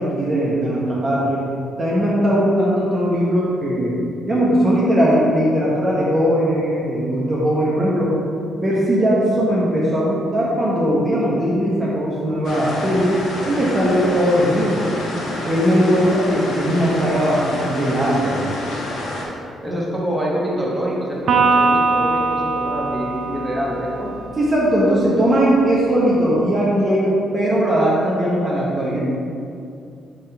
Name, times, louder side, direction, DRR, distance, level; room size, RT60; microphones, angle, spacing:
voice 1, 0.0-1.4 1.8-3.9 4.3-8.1 8.6-13.2 13.4-14.9 15.4-18.4 19.7-19.9 24.4-29.0, equal, 30° right, -6 dB, 1.1 m, -19 dB
sound 1, 12.4-19.2, left 1 dB, 75° left, 1.2 m, -28 dB
voice 2, 14.0-14.3 19.6-24.1, equal, 15° right, -4 dB, 1.3 m, -26 dB
Electric guitar, 21.3-24.8, right 4 dB, 65° right, 0.6 m, -21 dB
5.2 x 3.8 x 5.0 m, 2.5 s
cardioid pair, 90°, 0 cm